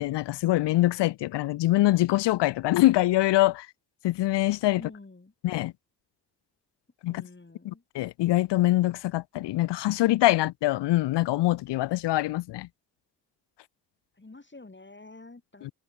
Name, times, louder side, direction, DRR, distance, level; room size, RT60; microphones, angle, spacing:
voice 1, 0.0-3.7 4.0-4.8 5.4-5.7 7.0-7.2 7.6-12.7 15.6-15.7, left 16 dB, 85° left, 0.6 m, -24 dB
voice 2, 4.7-5.3 7.0-7.8 14.1-15.7, left 3 dB, 25° left, 3.6 m, -48 dB
supercardioid pair, 45°, 41 cm